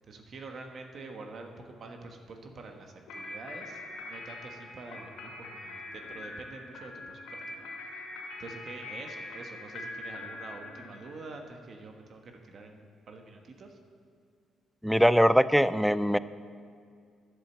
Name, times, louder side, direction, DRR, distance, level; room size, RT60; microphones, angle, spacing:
voice 1, 0.1-8.1 8.4-13.8, right 3 dB, 50° right, 4 dB, 1.3 m, -46 dB
sound 1, 3.1-11.4, left 2 dB, 85° left, 2.7 m, -43 dB
voice 2, 14.8-16.2, equal, ahead, 16 dB, 0.4 m, -22 dB
10.5 x 7.7 x 7.2 m, 2.2 s
cardioid pair, 90°, 0 cm